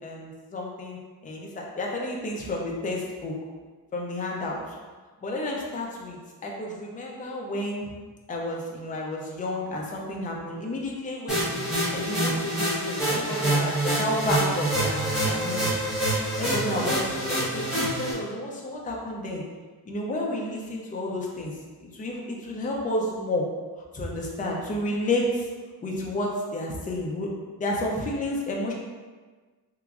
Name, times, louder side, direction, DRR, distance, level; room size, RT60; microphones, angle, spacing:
voice 1, 0.0-3.3 3.9-4.8 5.2-7.9 8.3-11.6 11.9-15.7 16.4-19.4 19.8-21.6 21.8-23.5 23.9-25.5 25.8-27.3 27.6-28.7, left 1 dB, 20° left, -2 dB, 0.4 m, -31 dB
sound 1, 11.3-18.1, right 1 dB, ahead, 1.0 m, -26 dB
3.4 x 2.9 x 2.4 m, 1.4 s
wide cardioid pair, 170°, 41 cm